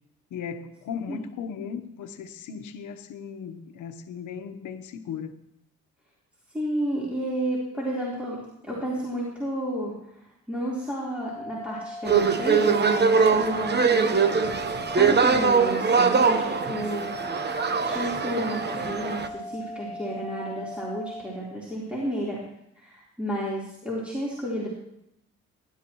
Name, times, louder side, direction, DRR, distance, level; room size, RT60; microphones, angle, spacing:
voice 1, 0.3-5.4, left 7 dB, 80° left, 8 dB, 1.2 m, -37 dB
voice 2, 6.5-8.4 8.6-14.1 14.9-17.1 17.8-22.4 22.7-24.7, equal, 5° right, -7 dB, 3.9 m, -31 dB
sound 1, 11.2-21.2, left 1 dB, 20° left, 1.9 m, -38 dB
sound 2, 12.0-19.3, right 5 dB, 35° right, 1.1 m, -22 dB
19.0 x 12.0 x 3.1 m, 0.79 s
cardioid pair, 90°, 30 cm